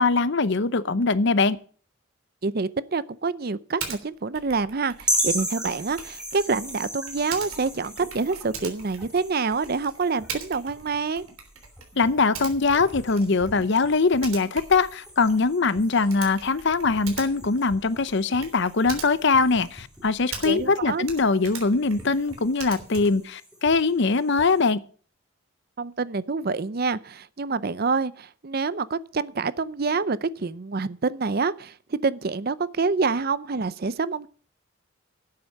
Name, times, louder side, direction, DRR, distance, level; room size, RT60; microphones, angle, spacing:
voice 1, 0.0-1.6 12.0-24.8, left 4 dB, 55° left, 0.7 m, -22 dB
voice 2, 2.4-11.2 20.4-21.0 25.8-34.3, right 4 dB, 45° right, 0.6 m, -27 dB
Typing, 3.8-4.0 4.3-20.8 21.0-23.3, right 6 dB, 80° right, 3.3 m, -41 dB
sound 1, 5.0-24.6, equal, 5° right, 3.9 m, -37 dB
12.0 x 8.6 x 6.5 m
head